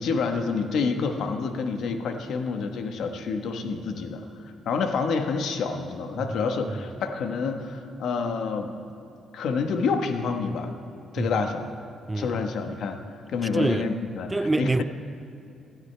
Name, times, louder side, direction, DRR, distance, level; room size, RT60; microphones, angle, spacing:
voice 1, 0.0-8.7 9.3-10.7 11.1-11.7 12.1-14.8, left 5 dB, 70° left, 1.2 m, -28 dB
voice 2, 12.1-12.5 13.5-13.9 14.3-14.8, right 2 dB, 15° right, 0.3 m, -26 dB
19.5 x 13.0 x 3.3 m
cardioid pair, 90°, 0 cm